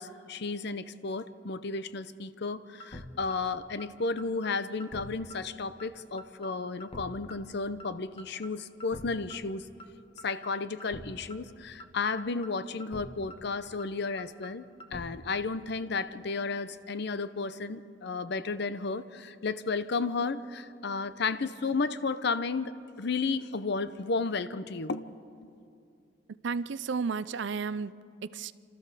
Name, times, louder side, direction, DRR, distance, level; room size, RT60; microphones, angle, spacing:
voice 1, 0.0-9.7 10.2-14.6 14.9-22.7 23.0-25.1, left 4 dB, 60° left, 13 dB, 0.7 m, -33 dB
sound 1, 2.8-3.0 3.3-3.4 3.8-3.9 4.2-4.5 4.8-5.0 5.3-5.4 5.8-5.9 6.2-6.5 6.8-7.0 7.3-7.4 7.8-7.9 8.2-8.5 8.8-9.0 9.3-9.4 9.8-9.9 10.2-10.5 10.8-11.0 11.3-11.4 11.8-11.9 12.2-12.5 12.8-13.0 13.3-13.4 13.8-13.9 14.2-14.5 14.8-15.0 15.3-15.4, equal, 30° left, 1.2 m, -44 dB
voice 2, 26.4-28.5, right 5 dB, 65° right, 16 dB, 0.5 m, -33 dB
30.0 x 13.5 x 6.7 m, 2.5 s
head